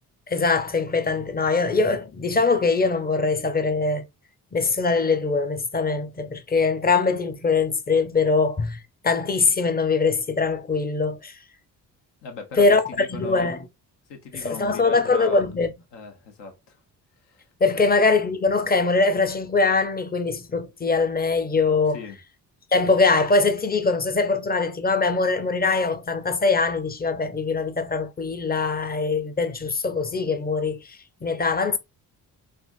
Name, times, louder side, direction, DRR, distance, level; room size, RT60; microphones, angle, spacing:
voice 1, 0.3-4.0 4.5-11.4 12.6-13.6 14.3-15.7 17.6-22.0 22.7-31.8, left 4 dB, 20° left, 0.7 m, -22 dB
voice 2, 12.2-13.5 14.1-15.4 15.9-16.8 17.2-17.5 17.7-17.9 21.9-22.2, left 4 dB, 75° left, 1.2 m, -38 dB
3.4 x 2.5 x 2.6 m
supercardioid pair, 60°, 42 cm